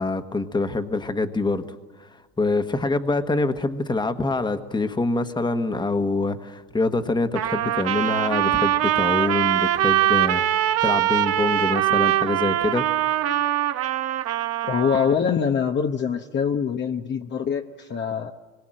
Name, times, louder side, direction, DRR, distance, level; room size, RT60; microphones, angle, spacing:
voice 1, 0.0-1.6 2.0-2.1 2.4-12.9, left 3 dB, 15° left, 9 dB, 1.5 m, -25 dB
Trumpet, 7.3-15.2, right 12 dB, 45° right, 1.2 m, -22 dB
voice 2, 14.6-18.3, left 7 dB, 35° left, 4 dB, 1.1 m, -24 dB
25.0 x 22.0 x 7.7 m, 1.3 s
supercardioid pair, 95°, 33 cm